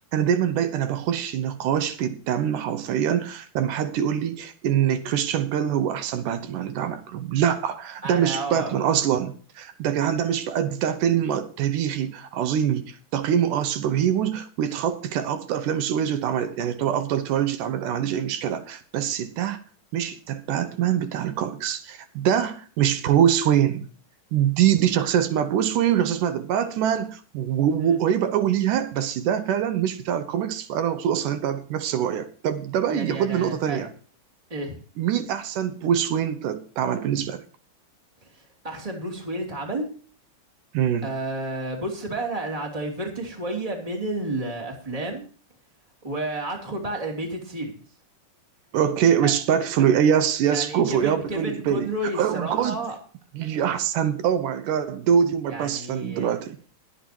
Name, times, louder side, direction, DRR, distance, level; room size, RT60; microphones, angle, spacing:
voice 1, 0.1-19.6 19.9-23.9 24.3-33.9 35.0-37.4 40.7-41.1 48.7-52.9 53.3-56.6, right 9 dB, 80° right, 2.5 m, -24 dB
voice 2, 8.0-8.9 27.8-28.0 32.9-33.9 34.5-34.8 38.6-39.9 41.0-45.2 46.0-47.7 49.2-49.3 50.4-53.0 55.5-56.3, right 1 dB, 10° right, 2.5 m, -31 dB
21.0 x 8.6 x 2.9 m
omnidirectional pair, 3.6 m